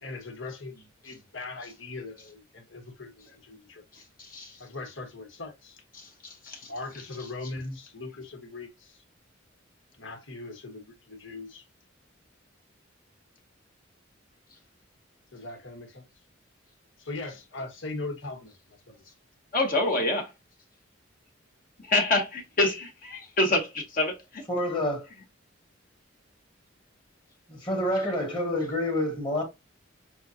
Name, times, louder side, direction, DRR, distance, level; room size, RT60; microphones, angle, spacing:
voice 1, 0.0-3.8 4.6-5.8 6.7-9.0 9.9-11.6 15.3-16.0 17.0-19.0, left 2 dB, 80° left, 1.6 m, -40 dB
voice 2, 3.9-4.6 5.9-6.7 19.5-20.3 21.8-24.4, left 2 dB, 45° left, 1.0 m, -27 dB
voice 3, 24.5-25.1 27.5-29.4, left 1 dB, 25° left, 1.5 m, -28 dB
6.2 x 2.4 x 2.7 m
head